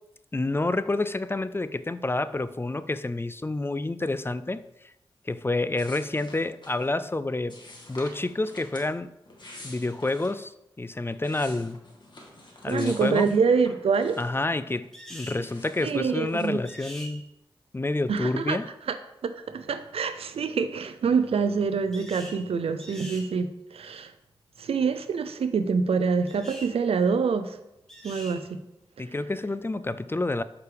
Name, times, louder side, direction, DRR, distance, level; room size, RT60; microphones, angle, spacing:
voice 1, 0.3-4.6 5.3-7.6 7.9-9.1 9.6-10.5 10.8-11.8 12.6-13.3 14.2-17.2 17.7-18.7 29.0-30.4, left 2 dB, 25° left, 14 dB, 0.4 m, -28 dB
sound 1, 5.8-6.9 7.5-8.9 9.2-10.4 10.9-14.5 14.8-16.6, left 2 dB, 50° left, 1.8 m, -48 dB
voice 2, 12.7-14.2 15.8-16.6 18.1-18.6 18.9-19.0 19.2-24.1 24.6-27.6 28.0-28.6, right 5 dB, 85° right, 11 dB, 0.5 m, -26 dB
sound 2, 14.9-15.4 16.7-17.1 21.9-22.4 22.8-23.3 26.3-26.7 27.9-28.4, equal, 5° left, 1.8 m, -43 dB
8.1 x 4.8 x 3.4 m, 0.87 s
cardioid pair, 45°, 10 cm